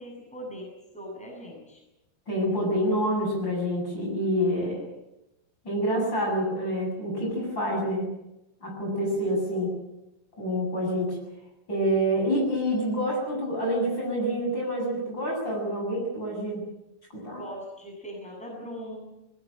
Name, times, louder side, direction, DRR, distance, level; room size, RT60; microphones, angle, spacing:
voice 1, 0.0-1.8 4.5-4.9 17.4-19.1, equal, ahead, 0 dB, 7.6 m, -40 dB
voice 2, 2.3-4.8 5.6-8.1 8.6-9.7 10.4-11.2 11.7-16.6 17.1-17.4, equal, 25° left, -1 dB, 8.1 m, -27 dB
21.5 x 20.5 x 9.0 m, 0.91 s
omnidirectional pair, 4.7 m